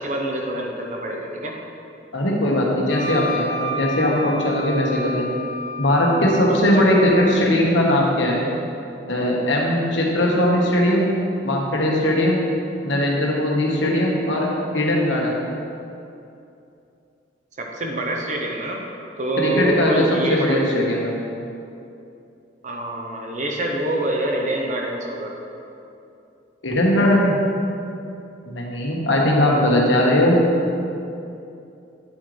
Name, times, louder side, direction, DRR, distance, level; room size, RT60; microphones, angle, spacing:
voice 1, 0.0-1.5 6.7-7.0 17.6-18.8 19.2-20.7 22.6-25.3, right 1 dB, 40° right, 0 dB, 0.9 m, -26 dB
voice 2, 2.1-5.4 5.8-8.4 9.1-11.1 11.4-12.4 12.8-15.4 19.4-21.2 26.6-27.4 28.5-30.4, left 1 dB, 80° left, -2 dB, 1.4 m, -19 dB
Wind instrument woodwind instrument, 2.9-7.4, equal, 40° left, 1.1 m, -31 dB
8.6 x 7.9 x 3.3 m, 2.7 s
head